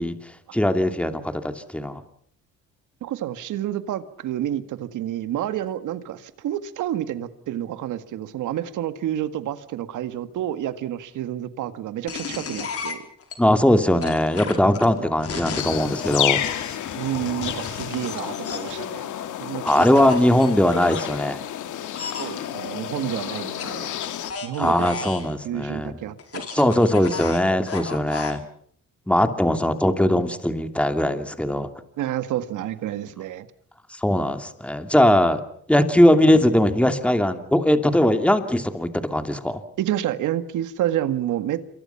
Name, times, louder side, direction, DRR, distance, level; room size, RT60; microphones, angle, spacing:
voice 1, 0.0-2.0 13.4-16.4 19.6-21.4 24.6-26.0 26.5-28.4 29.1-31.7 33.9-35.4 35.7-39.6, left 1 dB, 5° left, 8 dB, 2.7 m, -20 dB
voice 2, 3.0-13.0 17.0-19.1 19.4-19.7 20.0-20.1 22.2-23.9 24.4-25.1 25.4-26.4 32.0-33.5 39.8-41.7, right 12 dB, 80° right, 12 dB, 1.9 m, -29 dB
sound 1, 12.1-13.4 14.0-18.8 19.7-21.0 21.9-22.3 23.6-25.3 26.2-28.4, left 5 dB, 50° left, 4.9 m, -34 dB
sound 2, 15.6-24.3, left 11 dB, 80° left, 2.2 m, -30 dB
27.5 x 23.5 x 5.8 m, 0.64 s
cardioid pair, 90°, 30 cm